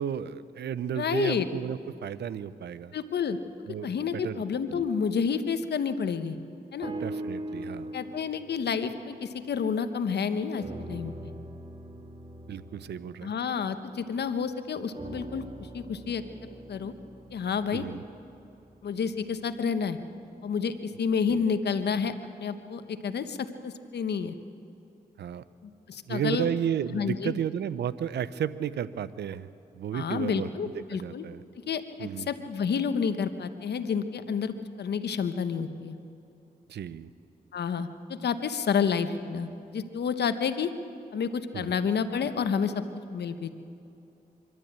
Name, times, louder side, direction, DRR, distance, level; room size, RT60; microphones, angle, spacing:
voice 1, 0.0-2.9 3.7-4.4 4.7-4.9 7.0-7.9 12.5-13.3 17.7-18.0 21.3-21.4 25.2-25.4 26.1-29.5 29.7-30.5 30.7-31.4 32.0-32.3 36.7-37.1 41.5-41.8, right 9 dB, 80° right, 16 dB, 0.6 m, -33 dB
voice 2, 1.0-1.5 2.9-3.4 3.8-6.4 6.7-6.9 7.9-11.3 13.2-16.2 16.7-16.9 17.3-17.8 18.8-20.0 20.4-24.4 25.6-26.5 26.9-27.3 29.9-31.2 31.7-36.0 37.5-40.7 41.1-42.8 43.1-43.5, left 6 dB, 75° left, 10 dB, 1.1 m, -30 dB
sound 1, 6.8-10.2 10.6-14.3 14.9-19.2 19.8-19.9, right 1 dB, 35° right, 1.8 m, -42 dB
24.0 x 12.5 x 8.8 m, 2.7 s
supercardioid pair, 45°, 17 cm